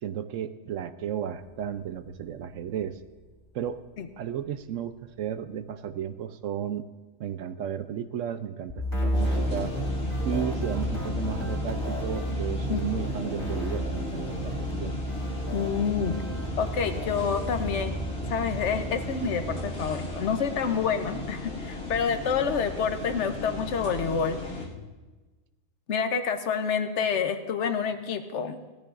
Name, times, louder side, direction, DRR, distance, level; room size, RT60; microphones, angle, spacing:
voice 1, 0.0-3.0 3.5-3.8 4.2-6.8 7.2-9.7 10.2-15.0, right 9 dB, 70° right, 11 dB, 0.9 m, -34 dB
sound 1, 8.7-19.5, equal, 15° right, 3.2 m, -32 dB
sound 2, 9.1-24.7, left 1 dB, 80° left, 2.4 m, -36 dB
voice 2, 15.5-16.2 16.6-18.0 18.3-24.4 25.9-28.6, left 6 dB, 60° left, 8 dB, 1.1 m, -28 dB
17.0 x 14.0 x 2.5 m, 1.2 s
omnidirectional pair, 1.4 m